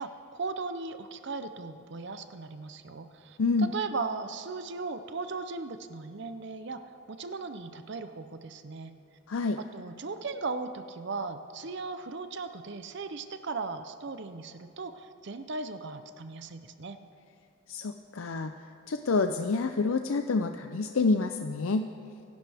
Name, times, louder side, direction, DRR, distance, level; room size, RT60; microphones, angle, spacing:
voice 1, 0.0-9.0 9.6-17.0, right 4 dB, 55° right, 9 dB, 0.6 m, -37 dB
voice 2, 3.4-3.7 9.3-9.6 17.7-18.5 18.9-21.9, left 3 dB, 70° left, 7 dB, 0.5 m, -28 dB
25.0 x 11.5 x 3.5 m, 2.6 s
head